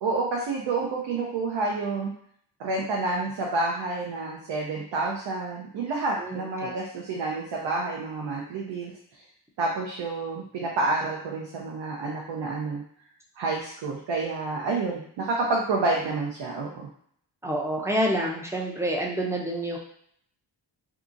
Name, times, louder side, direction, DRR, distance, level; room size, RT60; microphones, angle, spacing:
voice 1, 0.0-2.1 2.6-8.9 9.6-12.8 13.4-16.9, right 3 dB, 85° right, -2 dB, 0.6 m, -29 dB
voice 2, 6.2-6.7 17.4-19.8, right 1 dB, 5° right, -2 dB, 0.4 m, -28 dB
2.8 x 2.4 x 2.5 m, 0.65 s
wide cardioid pair, 120°, 42 cm